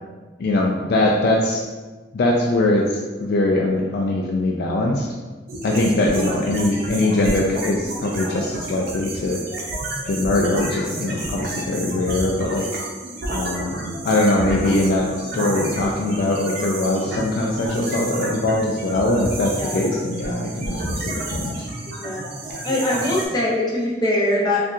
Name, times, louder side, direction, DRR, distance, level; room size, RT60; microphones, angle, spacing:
voice 1, 0.4-1.7 2.1-5.1 5.6-9.5 10.0-12.7 13.3-21.7, left 2 dB, 60° left, -1 dB, 0.4 m, -21 dB
sound 1, 5.5-23.3, right 1 dB, 55° right, 0.7 m, -30 dB
voice 2, 22.6-24.6, left 1 dB, 20° left, -5 dB, 0.8 m, -22 dB
4.3 x 2.5 x 2.4 m, 1.3 s
head